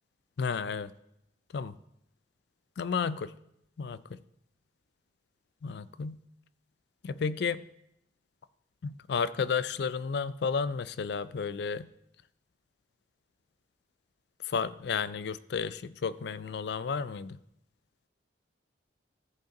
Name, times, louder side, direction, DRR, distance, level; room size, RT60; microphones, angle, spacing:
voice 1, 0.4-0.9 1.5-1.8 2.8-3.3 3.8-4.2 5.6-6.2 7.0-7.6 8.8-11.9 14.4-17.4, left 5 dB, 60° left, 16 dB, 0.4 m, -32 dB
14.0 x 5.2 x 3.8 m, 0.79 s
head